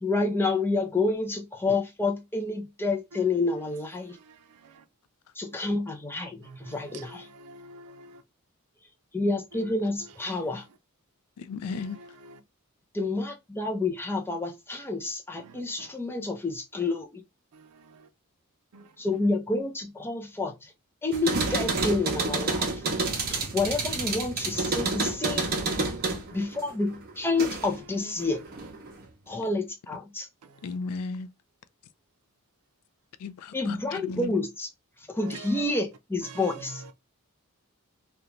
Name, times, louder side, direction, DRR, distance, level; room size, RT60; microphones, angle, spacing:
voice 1, 0.0-4.2 5.4-6.4 6.6-7.3 9.1-10.6 12.9-17.1 19.0-20.5 21.0-22.8 23.3-25.5 26.3-28.4 29.3-30.3 33.5-34.7 35.1-36.8, left 3 dB, 10° left, 0.4 m, -29 dB
voice 2, 6.5-8.1 11.7-12.4 15.4-15.5 18.7-18.8 26.3-26.4 28.0-28.1 35.2-35.6 36.3-36.6, right 4 dB, 85° right, 0.4 m, -45 dB
voice 3, 11.4-12.0 30.6-31.3 33.2-34.3, left 4 dB, 90° left, 0.4 m, -35 dB
sound 1, 21.1-27.8 28.2-29.0, right 3 dB, 45° right, 0.6 m, -29 dB
2.5 x 2.2 x 2.9 m
head